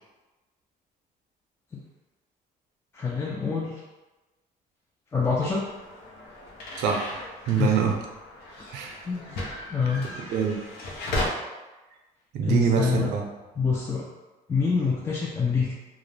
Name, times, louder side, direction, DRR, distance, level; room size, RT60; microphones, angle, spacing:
voice 1, 2.9-3.8 5.1-5.6 7.6-7.8 9.1-9.4 9.7-10.1 12.5-13.1 13.6-14.1 14.5-15.7, left 5 dB, 15° left, -4 dB, 0.3 m, -26 dB
sound 1, 5.4-11.3, left 1 dB, 75° left, 0.6 m, -36 dB
voice 2, 6.8-7.1 7.5-8.0 8.7-9.1 10.3-10.6 12.3-13.2, right 7 dB, 80° right, 2 dB, 0.5 m, -24 dB
2.4 x 2.0 x 3.2 m, 1.1 s
cardioid pair, 110°, 17 cm